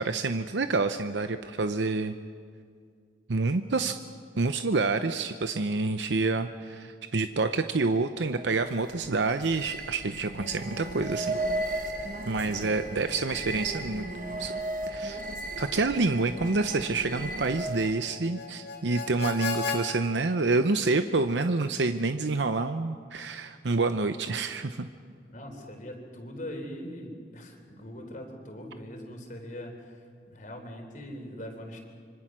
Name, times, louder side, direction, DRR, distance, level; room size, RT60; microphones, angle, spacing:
voice 1, 0.0-2.1 3.3-4.0 4.4-11.4 12.3-14.1 14.4-14.5 14.9-15.2 15.6-24.9, right 3 dB, 75° right, 9 dB, 0.8 m, -28 dB
sound 1, 8.3-18.1, right 2 dB, 50° right, 1.5 m, -36 dB
Harmonica, 10.3-19.8, left 5 dB, 80° left, 4.7 m, -40 dB
voice 2, 12.4-13.5 25.3-31.8, equal, 45° left, 3 dB, 3.7 m, -42 dB
26.0 x 24.5 x 6.2 m, 2.1 s
head